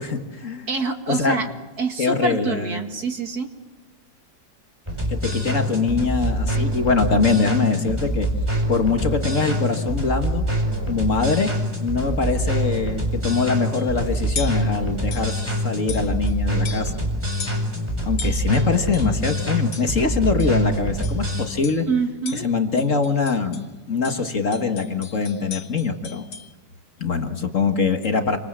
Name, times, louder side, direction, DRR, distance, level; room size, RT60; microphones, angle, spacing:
voice 1, 0.0-0.7 1.1-1.5 2.0-2.8 5.1-8.3 8.7-10.5 10.9-11.5 11.8-16.9 18.0-21.9 22.3-26.3 27.0-28.4, left 4 dB, 45° left, 6 dB, 1.9 m, -23 dB
voice 2, 0.7-1.5 1.8-3.5 21.9-22.5, right 4 dB, 55° right, 5 dB, 2.5 m, -26 dB
sound 1, 4.9-21.4, right 1 dB, 15° right, 4.7 m, -25 dB
sound 2, 13.8-14.0 14.4-14.7 15.1-15.4 15.9-16.3 16.6-17.1 17.4-17.7 18.2-19.2 19.7-20.0 20.4-20.7 21.0-21.3 21.6-21.9 22.3-23.7 24.0-26.5, left 6 dB, 65° left, 2.1 m, -37 dB
28.5 x 25.5 x 7.5 m, 1.2 s
omnidirectional pair, 2.0 m